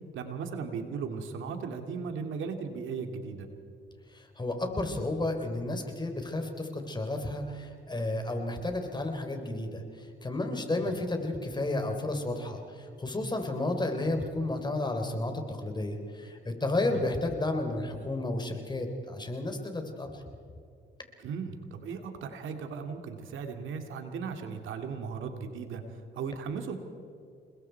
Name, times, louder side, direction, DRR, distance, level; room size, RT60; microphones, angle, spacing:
voice 1, 0.1-3.5 10.7-10.9 16.9-17.0 21.2-25.8 26.1-26.8, right 5 dB, 80° right, 5 dB, 2.5 m, -37 dB
voice 2, 4.1-20.2, left 2 dB, 20° left, 5 dB, 3.7 m, -32 dB
29.0 x 21.0 x 4.7 m, 2.5 s
cardioid pair, 90°, 20 cm